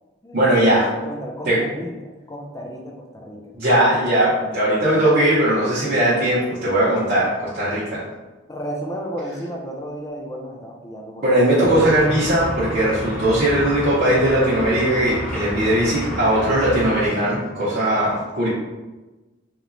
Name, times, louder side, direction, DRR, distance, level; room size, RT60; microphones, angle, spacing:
voice 1, 0.3-0.9 1.5-1.6 3.5-8.0 11.2-18.5, right 1 dB, 50° right, -11 dB, 0.6 m, -19 dB
voice 2, 0.9-3.5 8.5-11.4, equal, 15° left, 1 dB, 0.3 m, -33 dB
sound 1, 11.6-17.1, equal, 40° left, 0.8 m, -30 dB
2.9 x 2.1 x 2.5 m, 1.1 s
head